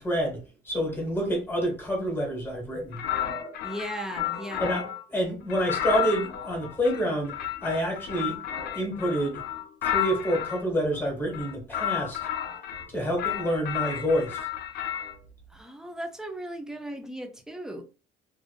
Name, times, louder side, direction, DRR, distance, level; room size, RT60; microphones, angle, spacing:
voice 1, 0.0-3.1 4.6-4.8 5.1-7.3 7.6-8.4 8.7-9.4 9.8-12.2 12.9-14.5, equal, 10° left, 1.3 m, -28 dB
sound 1, 2.9-5.0 5.5-10.6 11.3-12.9 13.2-15.1, left 11 dB, 75° left, 0.5 m, -32 dB
voice 2, 3.6-4.8 15.5-17.8, right 1 dB, 5° right, 0.5 m, -37 dB
2.5 x 2.4 x 2.3 m
cardioid pair, 110°, 17 cm